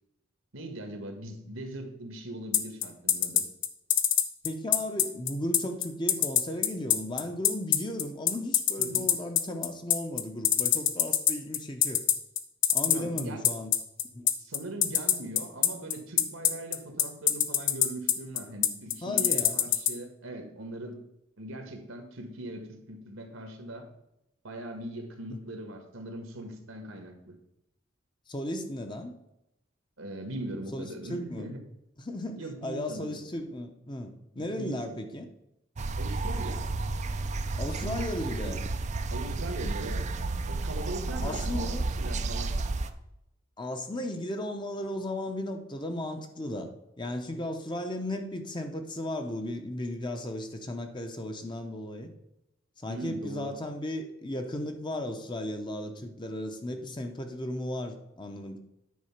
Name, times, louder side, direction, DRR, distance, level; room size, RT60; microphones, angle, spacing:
voice 1, 0.5-3.4 8.8-9.1 12.8-13.4 14.4-21.0 21.4-23.9 24.4-27.4 30.0-31.6 32.4-33.2 34.3-35.0 36.0-36.6 37.8-38.6 39.1-40.1 40.5-42.6 52.9-53.5, right 1 dB, 80° right, 5 dB, 1.6 m, -40 dB
sound 1, 2.5-19.9, left 11 dB, 60° left, 0.7 m, -23 dB
voice 2, 4.4-12.0 12.7-13.7 14.1-14.3 19.0-19.6 25.3-25.4 28.3-29.1 30.7-30.8 31.1-31.5 32.0-35.3 37.6-38.6 41.2-41.9 43.6-46.7 47.0-52.1 52.8-58.6, left 1 dB, 25° left, 5 dB, 0.8 m, -35 dB
sound 2, 35.8-42.9, right 3 dB, 35° right, 0.5 m, -32 dB
9.5 x 4.3 x 5.8 m, 0.86 s
head